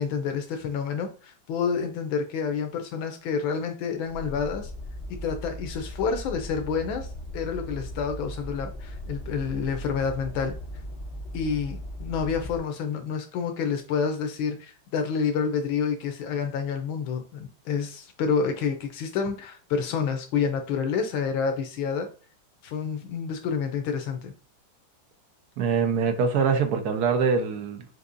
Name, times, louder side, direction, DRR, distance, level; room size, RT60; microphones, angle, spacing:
voice 1, 0.0-4.7 5.2-10.5 11.3-22.1 22.6-24.3, left 6 dB, 80° left, 1.5 m, -28 dB
sound 1, 4.0-12.6, equal, 40° left, 0.9 m, -38 dB
voice 2, 25.6-27.9, right 5 dB, 65° right, 1.1 m, -24 dB
6.3 x 2.7 x 2.5 m
omnidirectional pair, 2.2 m